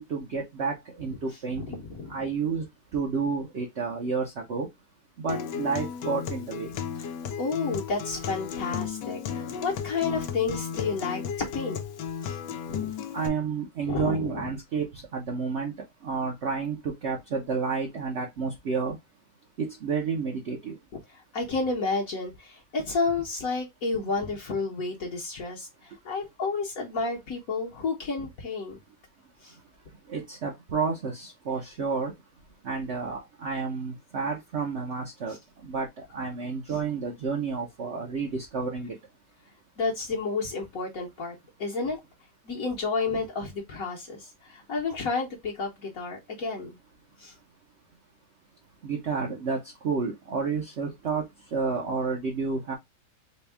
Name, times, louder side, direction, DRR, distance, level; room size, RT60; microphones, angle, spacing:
voice 1, 0.0-1.8 2.1-2.6 2.9-4.7 5.2-6.7 13.1-15.7 16.0-19.0 19.6-20.8 30.1-32.1 32.6-35.4 35.6-39.0 48.8-49.6 49.8-52.7, right 5 dB, 50° right, 0.9 m, -30 dB
voice 2, 1.6-2.2 7.0-7.1 7.4-11.8 12.2-12.4 12.7-12.9 13.8-14.5 21.1-28.8 29.4-29.6 35.3-35.4 39.8-42.0 42.4-46.8 47.2-47.3, left 4 dB, 55° left, 1.3 m, -31 dB
Acoustic guitar, 5.3-13.3, left 7 dB, 85° left, 1.2 m, -34 dB
4.3 x 2.3 x 3.3 m
omnidirectional pair, 1.8 m